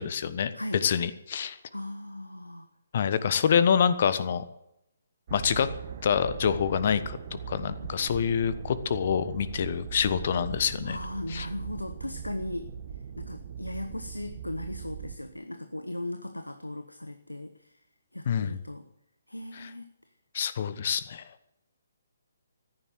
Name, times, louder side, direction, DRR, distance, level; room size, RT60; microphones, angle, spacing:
voice 1, 0.0-0.5 0.8-1.6 2.9-4.4 5.3-5.7 6.0-7.2 7.5-11.0 11.3-11.5 18.3-18.6 19.5-19.7 20.3-21.2, left 7 dB, 45° left, 13 dB, 1.2 m, -26 dB
voice 2, 0.5-0.9 1.7-2.7 10.8-12.7 13.2-17.8 18.1-18.9 19.3-19.9, left 1 dB, 90° left, 8 dB, 1.2 m, -37 dB
sound 1, 5.3-15.2, right 8 dB, 45° right, 1.4 m, -40 dB
14.5 x 11.0 x 7.9 m, 0.83 s
figure-of-eight pair, 135°, 0 cm